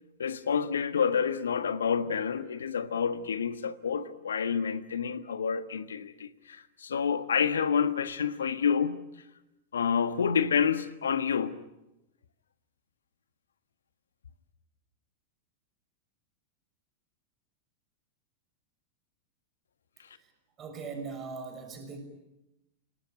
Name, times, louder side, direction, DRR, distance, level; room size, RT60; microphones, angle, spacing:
voice 1, 0.2-9.0 9.7-11.5, left 7 dB, 70° left, 1.5 m, -28 dB
voice 2, 20.6-22.0, right 5 dB, 25° right, 6.0 m, -39 dB
29.5 x 19.0 x 9.0 m
figure-of-eight pair, 90°, 0 cm